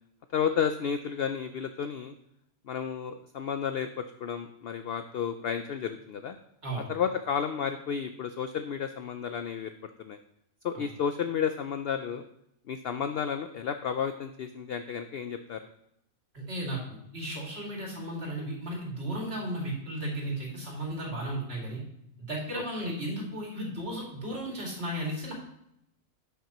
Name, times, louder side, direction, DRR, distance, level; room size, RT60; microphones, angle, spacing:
voice 1, 0.3-2.1 2.7-6.4 6.9-10.2 10.6-12.2 12.7-15.6 22.6-22.9, left 7 dB, 65° left, 8 dB, 0.6 m, -32 dB
voice 2, 16.3-21.8 22.2-25.3, right 1 dB, 50° right, -2 dB, 2.6 m, -35 dB
12.0 x 5.7 x 2.9 m, 0.78 s
omnidirectional pair, 1.4 m